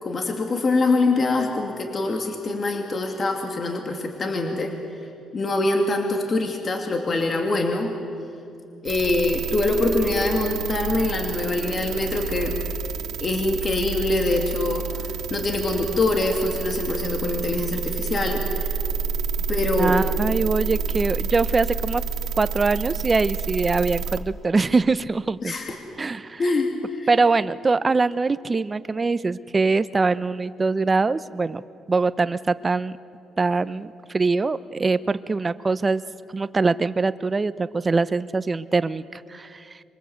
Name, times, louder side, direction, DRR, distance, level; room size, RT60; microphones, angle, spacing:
voice 1, 0.0-4.7 5.3-7.9 8.8-12.6 13.2-15.0 15.3-18.7 19.5-20.0 25.4-25.8 26.4-27.1, left 2 dB, 40° left, 3 dB, 2.7 m, -24 dB
sound 1, 8.9-24.2, right 5 dB, 80° right, 1.3 m, -29 dB
voice 2, 19.8-22.0 22.4-25.6 26.0-26.4 27.1-31.6 31.9-32.9 33.4-36.0 36.3-39.6, right 4 dB, 30° right, 14 dB, 0.8 m, -23 dB
27.0 x 23.5 x 8.1 m, 2.7 s
cardioid pair, 90°, 0 cm